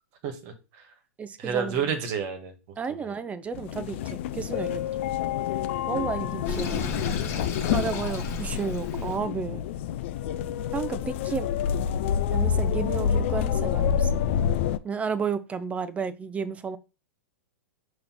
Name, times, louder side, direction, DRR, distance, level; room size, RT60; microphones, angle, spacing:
voice 1, 0.2-0.9 1.4-2.5 2.9-3.2, right 7 dB, 45° right, 1.7 m, -30 dB
voice 2, 1.2-1.9 2.8-4.8 5.9-6.9 7.7-9.6 10.7-11.5 12.3-14.2 14.8-16.8, right 6 dB, 15° right, 0.6 m, -32 dB
sound 1, 3.5-14.8, left 8 dB, 55° left, 0.5 m, -28 dB
Sink (filling or washing), 6.5-9.2, left 4 dB, 40° left, 1.5 m, -33 dB
5.8 x 3.2 x 5.7 m
figure-of-eight pair, 100°, 8 cm